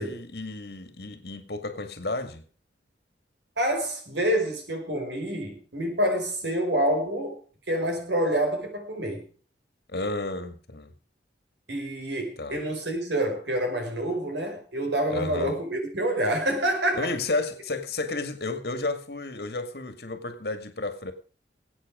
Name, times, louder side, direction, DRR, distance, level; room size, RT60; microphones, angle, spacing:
voice 1, 0.0-2.4 9.9-10.9 12.4-12.6 15.1-15.6 17.0-21.1, left 2 dB, 60° left, 2.0 m, -32 dB
voice 2, 3.6-7.4 7.7-9.3 11.7-17.1, right 1 dB, 80° right, 5.1 m, -27 dB
21.0 x 8.6 x 5.0 m
head